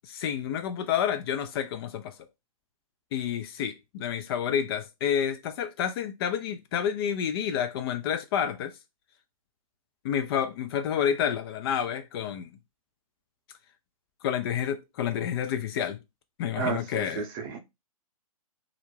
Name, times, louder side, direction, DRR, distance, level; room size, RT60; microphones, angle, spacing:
voice 1, 0.0-2.1 3.1-8.7 10.0-12.5 14.2-16.0 16.4-17.2, left 9 dB, 40° left, 0.4 m, -29 dB
voice 2, 16.6-17.6, right 6 dB, 40° right, 0.6 m, -32 dB
2.4 x 2.1 x 3.1 m
hypercardioid pair, 125°, 19 cm